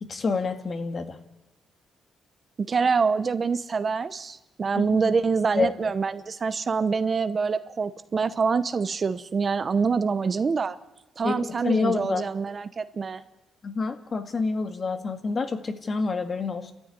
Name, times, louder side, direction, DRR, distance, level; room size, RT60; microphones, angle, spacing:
voice 1, 0.0-1.2 4.7-4.9 5.6-5.7 11.2-12.2 13.6-16.7, left 4 dB, 40° left, 7 dB, 2.0 m, -27 dB
voice 2, 2.7-10.8 11.2-13.2, right 5 dB, 35° right, 12 dB, 0.9 m, -25 dB
30.0 x 13.5 x 9.7 m, 1.0 s
cardioid pair, 115°, 0 cm